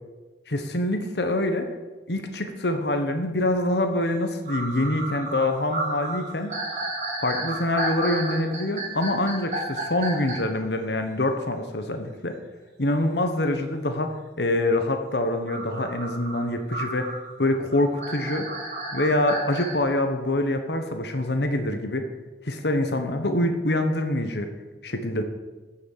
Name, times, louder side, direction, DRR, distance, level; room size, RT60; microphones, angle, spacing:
voice 1, 0.5-1.7 2.1-6.5 7.2-12.4 12.8-17.1 17.4-18.5 18.9-22.1 22.4-24.5 24.8-25.2, left 1 dB, 75° left, 6 dB, 1.4 m, -25 dB
sound 1, 4.0-4.1 4.5-10.4 15.5-19.8, right 2 dB, 40° right, 4.3 m, -32 dB
14.5 x 6.5 x 7.5 m, 1.2 s
head